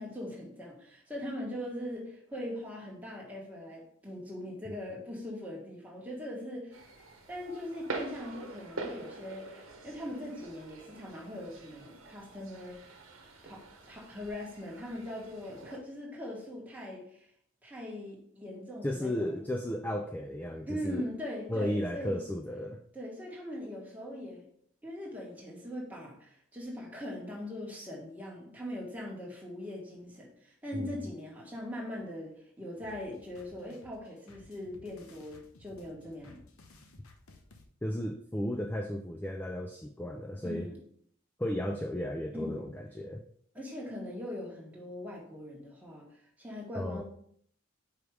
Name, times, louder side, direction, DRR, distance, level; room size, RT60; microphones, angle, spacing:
voice 1, 0.0-6.8 7.3-12.8 13.4-17.3 17.6-19.4 20.7-22.2 22.9-24.4 24.8-36.4 40.4-40.8 42.3-42.7 43.5-46.1 46.4-47.0, left 1 dB, 5° right, -3 dB, 1.5 m, -41 dB
sound 1, 6.7-15.8, right 3 dB, 65° right, 1.1 m, -45 dB
voice 2, 18.8-21.0 21.5-22.8 30.7-30.9 37.8-40.7 41.4-43.2 46.8-47.0, left 1 dB, 10° left, 4 dB, 0.3 m, -34 dB
sound 2, 32.8-37.6, left 2 dB, 75° left, 0.9 m, -57 dB
5.2 x 4.9 x 4.7 m, 0.65 s
head